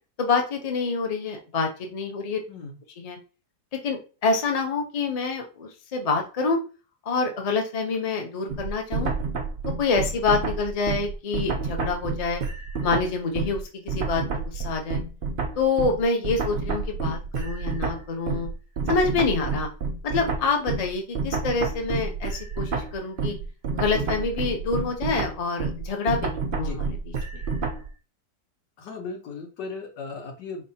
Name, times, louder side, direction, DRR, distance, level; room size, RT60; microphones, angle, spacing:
voice 1, 0.2-2.4 3.0-3.2 3.7-6.6 7.1-9.1 9.8-12.4 12.8-15.0 15.6-18.5 18.9-19.7 20.0-23.3 23.7-26.9 27.3-27.4, left 4 dB, 40° left, 3 dB, 0.5 m, -26 dB
voice 2, 2.5-2.8 26.5-26.8 28.8-30.6, left 4 dB, 85° left, 3 dB, 1.7 m, -37 dB
sound 1, 8.5-13.6 13.9-27.9, right 4 dB, 75° right, 0.5 m, -29 dB
4.3 x 3.5 x 2.8 m, 0.33 s
omnidirectional pair, 1.8 m